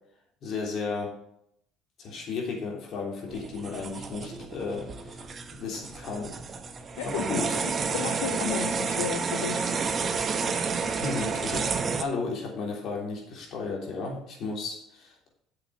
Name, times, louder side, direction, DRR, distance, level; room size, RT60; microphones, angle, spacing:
voice 1, 0.4-1.1 2.0-6.3 7.0-7.6 10.9-15.3, left 4 dB, 60° left, -1 dB, 3.2 m, -34 dB
sound 1, 3.3-12.0, right 5 dB, 40° right, 1.0 m, -30 dB
voice 2, 7.0-7.6 7.9-9.8, left 11 dB, 85° left, 7 dB, 0.5 m, -34 dB
7.9 x 6.8 x 4.7 m, 0.74 s
hypercardioid pair, 70°, 0 cm